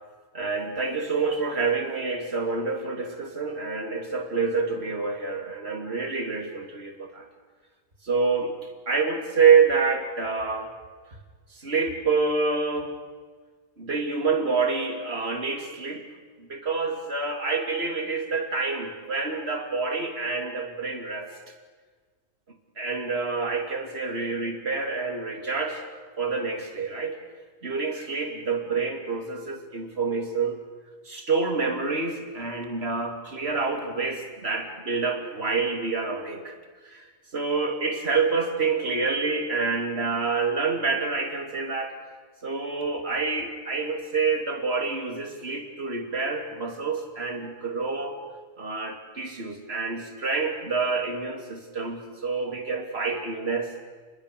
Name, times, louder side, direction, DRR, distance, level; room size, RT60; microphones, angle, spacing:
voice 1, 0.3-7.3 8.0-8.6 8.9-10.7 11.5-12.9 13.8-16.0 16.4-21.3 22.8-25.8 26.2-27.2 27.6-30.6 31.0-36.5 36.8-37.1 37.3-41.9 42.4-48.2 48.6-53.7, right 4 dB, 50° right, 4 dB, 3.2 m, -27 dB
29.5 x 22.5 x 6.9 m, 1.5 s
omnidirectional pair, 1.3 m